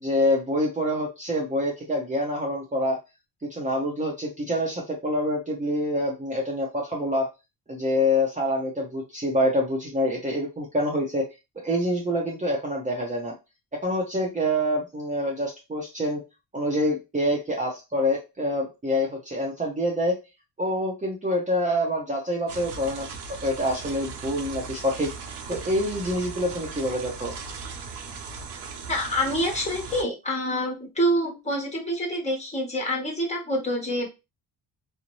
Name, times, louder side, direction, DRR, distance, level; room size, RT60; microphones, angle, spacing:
voice 1, 0.0-3.0 3.5-7.3 7.7-11.2 11.6-13.3 13.8-16.2 16.5-20.2 20.6-23.1 23.4-25.1 25.5-27.3, left 1 dB, 20° right, -2 dB, 0.7 m, -26 dB
sound 1, 22.5-30.0, right 5 dB, 90° right, 0.8 m, -38 dB
voice 2, 28.9-34.1, equal, 15° left, 0 dB, 1.2 m, -26 dB
2.5 x 2.0 x 3.0 m, 0.26 s
cardioid pair, 95°, 41 cm